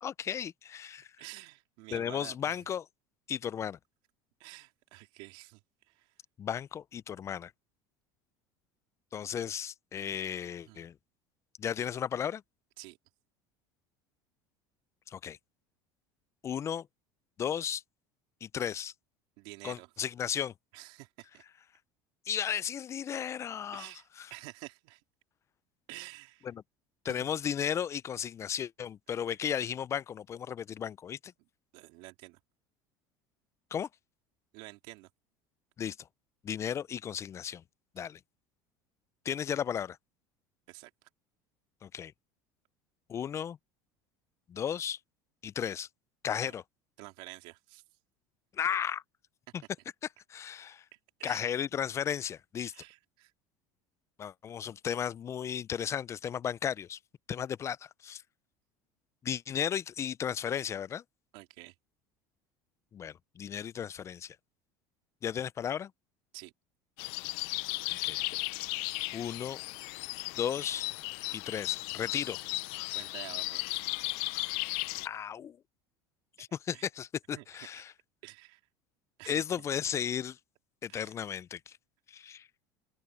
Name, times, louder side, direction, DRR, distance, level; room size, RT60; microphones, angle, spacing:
voice 1, 0.0-1.1 1.9-2.9 3.3-3.8 6.4-7.5 9.1-10.9 11.6-12.4 15.1-15.4 16.4-16.9 17.4-17.8 18.4-18.9 19.6-20.5 22.3-23.9 24.2-24.3 26.4-26.6 27.0-31.3 33.7-33.9 35.8-36.0 36.4-37.6 38.0-38.2 39.3-40.0 41.8-42.1 43.1-43.6 44.5-45.0 45.4-45.9 46.2-46.6 48.5-49.0 50.3-50.8 51.2-52.7 54.2-57.0 57.3-58.2 59.2-61.0 62.9-64.4 65.2-65.9 67.9-68.2 69.1-69.6 70.4-70.9 71.3-72.4 75.0-75.6 76.4-77.9 79.3-80.4 80.8-81.8 82.1-82.5, left 8 dB, 30° left, 0.4 m, -34 dB
voice 2, 1.2-2.6 4.4-5.6 5.9-6.1 10.6-10.8 12.8-13.0 19.4-20.1 20.7-21.4 23.7-25.0 25.9-26.5 27.1-27.3 29.3-29.4 31.7-32.4 34.5-35.1 40.7-41.1 46.4-46.5 47.0-47.8 51.2-51.5 52.7-53.3 61.3-61.7 66.3-66.5 72.9-73.8 76.7-76.8 77.3-77.8 78.2-78.6 79.2-79.4 80.9-81.1, right 23 dB, 70° right, 2.9 m, -49 dB
sound 1, 67.0-75.1, left 24 dB, 75° left, 0.6 m, -36 dB
open air
supercardioid pair, 120°, 10 cm